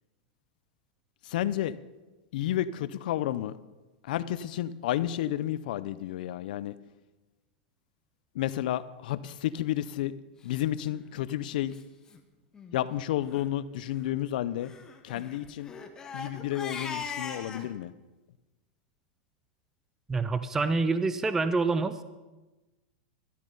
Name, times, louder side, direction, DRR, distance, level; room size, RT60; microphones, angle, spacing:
voice 1, 1.3-1.8 2.3-3.5 4.1-6.7 8.4-10.1 10.4-11.7 12.7-14.7 15.0-15.7 16.1-17.9, left 12 dB, 60° left, 15 dB, 0.6 m, -31 dB
Crying sobbing, 10.8-11.1 11.7-11.8 12.1-12.2 12.5-12.8 13.2-13.5 14.6-17.7, left 5 dB, 15° left, 1.0 m, -40 dB
voice 2, 20.1-22.0, right 3 dB, 10° right, 12 dB, 0.4 m, -27 dB
12.5 x 12.5 x 5.5 m, 1.1 s
supercardioid pair, 165°, 5 cm